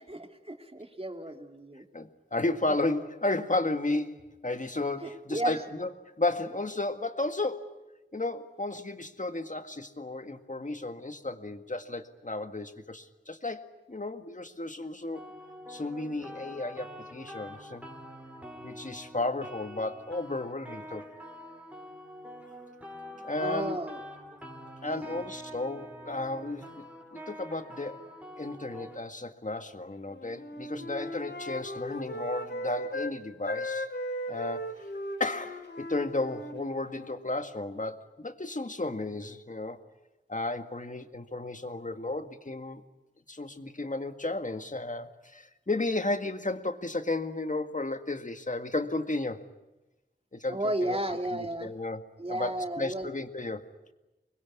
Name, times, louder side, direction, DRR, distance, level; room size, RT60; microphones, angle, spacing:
voice 1, 0.0-1.8 5.0-5.6 23.4-24.0 24.8-25.2 50.5-51.7 52.2-53.1, right 1 dB, 30° right, 5 dB, 2.9 m, -33 dB
voice 2, 1.9-7.8 8.1-15.2 15.7-17.8 18.6-21.0 23.2-23.8 24.8-26.8 27.1-28.0 28.4-33.9 34.3-34.7 35.2-39.8 40.3-42.8 43.3-49.4 50.3-51.0 51.3-52.0 52.3-53.6, left 2 dB, 40° left, 8 dB, 1.9 m, -33 dB
sound 1, 15.1-29.0, equal, 5° right, 4.2 m, -46 dB
Wind instrument woodwind instrument, 30.1-33.1 33.4-37.2, equal, 70° left, 4.1 m, -37 dB
25.5 x 21.5 x 9.6 m, 1.0 s
wide cardioid pair, 45°, 19 cm